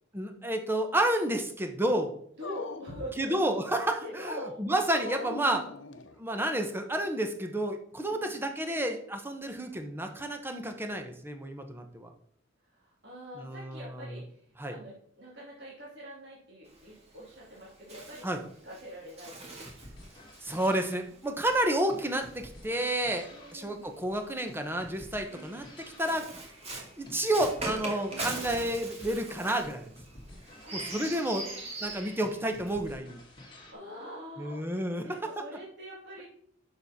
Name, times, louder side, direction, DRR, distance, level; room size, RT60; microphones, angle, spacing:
voice 1, 0.1-2.1 3.2-5.6 6.2-12.1 13.4-14.1 14.6-14.8 18.2-18.4 20.4-25.6 26.0-26.2 27.0-29.9 30.7-31.4 31.8-33.2 34.4-35.3, right 1 dB, 10° right, 5 dB, 0.9 m, -30 dB
Dog, 2.4-3.8 4.9-6.6, left 4 dB, 65° left, 0.7 m, -42 dB
voice 2, 2.4-3.3 4.0-4.6 8.1-8.4 12.7-14.4 14.7-18.2 18.6-19.7 23.3-24.0 25.3-25.6 28.1-28.4 30.4-31.7 33.7-34.6 35.0-36.2, equal, 60° right, -6 dB, 3.1 m, -44 dB
Bird, 16.7-23.2 24.1-32.9, right 2 dB, 30° right, 1.9 m, -42 dB
sound 1, 19.6-33.7, left 1 dB, 25° left, 2.2 m, -51 dB
6.9 x 6.8 x 4.2 m, 0.64 s
head